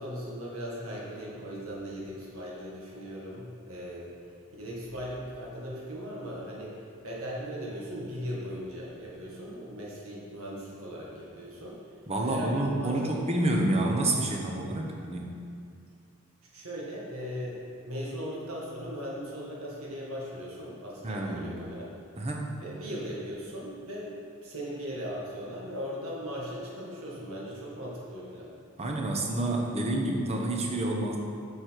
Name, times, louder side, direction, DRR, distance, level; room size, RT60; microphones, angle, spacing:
voice 1, 0.0-4.1 4.6-11.8 12.2-13.2 16.5-17.6 17.8-21.9 22.6-28.5, equal, 75° right, -5 dB, 1.8 m, -38 dB
voice 2, 12.1-15.3 21.0-21.5 22.2-22.5 28.8-31.2, right 1 dB, 30° right, 0 dB, 1.0 m, -28 dB
8.4 x 6.6 x 4.6 m, 2.4 s
head